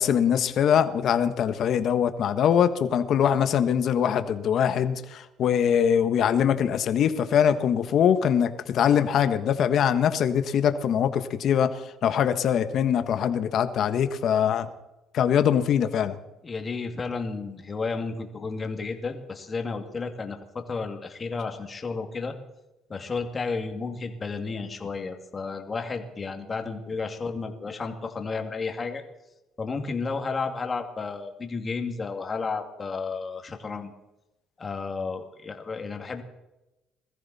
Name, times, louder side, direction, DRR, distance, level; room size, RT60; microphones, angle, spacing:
voice 1, 0.0-14.7 15.1-16.2, left 8 dB, 55° left, 10 dB, 1.4 m, -23 dB
voice 2, 16.4-22.3 22.9-29.0 29.6-33.9 34.6-36.2, left 4 dB, 25° left, 5 dB, 2.4 m, -32 dB
21.5 x 14.5 x 4.3 m, 0.96 s
cardioid pair, 115°, 0 cm